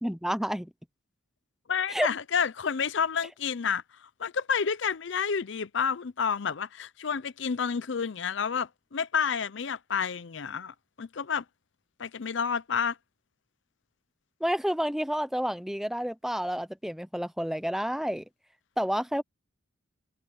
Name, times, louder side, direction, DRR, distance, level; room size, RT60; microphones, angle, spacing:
voice 1, 0.0-0.7 1.9-2.1 14.4-18.2 18.8-19.2, equal, ahead, 0.6 m, -29 dB
voice 2, 1.7-11.4 12.0-13.0, left 6 dB, 65° left, 0.6 m, -30 dB
head